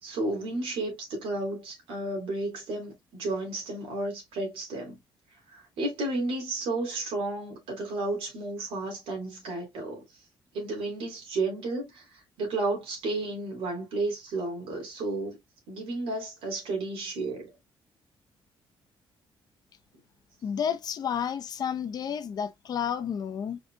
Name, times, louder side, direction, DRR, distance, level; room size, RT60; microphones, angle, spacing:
voice 1, 0.0-5.0 5.5-10.1 10.5-15.4 15.7-17.5, right 2 dB, 90° right, 3.2 m, -32 dB
voice 2, 20.4-23.6, left 8 dB, 45° left, 0.8 m, -31 dB
4.9 x 4.0 x 2.3 m
cardioid pair, 150°, 9 cm